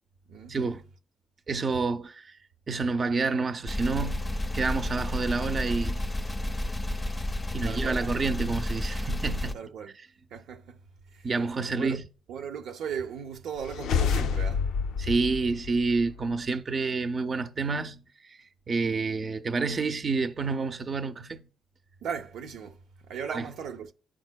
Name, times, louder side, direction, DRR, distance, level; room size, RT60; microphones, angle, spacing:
voice 1, 0.5-0.9 1.5-2.4 2.7-6.0 7.5-9.6 11.2-12.0 15.0-18.4 18.7-21.5 23.3-23.5, right 4 dB, 40° right, 0.6 m, -29 dB
sound 1, 3.7-9.5, left 1 dB, 20° left, 0.6 m, -31 dB
voice 2, 7.6-8.0 9.5-10.0 10.3-10.8 11.1-11.3 11.7-12.0 12.3-14.7 22.0-22.8 23.1-23.9, right 7 dB, 80° right, 0.7 m, -37 dB
sound 2, 13.6-16.3, left 6 dB, 85° left, 0.4 m, -29 dB
12.0 x 4.4 x 2.2 m
cardioid pair, 90°, 0 cm